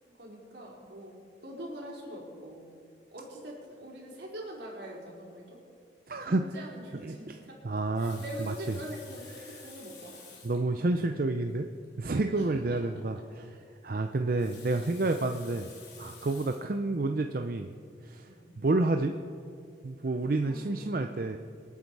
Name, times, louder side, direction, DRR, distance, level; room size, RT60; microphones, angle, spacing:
voice 1, 0.1-2.6 3.1-5.6 6.2-7.6 8.0-10.2 12.3-12.8 14.6-14.7 16.2-16.4 18.2-18.4 20.4-21.0, right 1 dB, 80° right, -3 dB, 4.2 m, -44 dB
voice 2, 6.1-6.4 7.0-7.3 7.6-8.5 10.4-11.7 12.0-13.6 13.8-15.7 16.0-17.7 18.0-18.3 18.6-19.1 19.8-21.4, right 2 dB, 50° right, 6 dB, 0.5 m, -29 dB
Water tap faucet, 7.8-10.7 11.5-11.6 11.8-11.9 14.2-16.8 17.4-17.6, left 5 dB, 70° left, 3.4 m, -51 dB
25.5 x 9.4 x 4.7 m, 2.3 s
head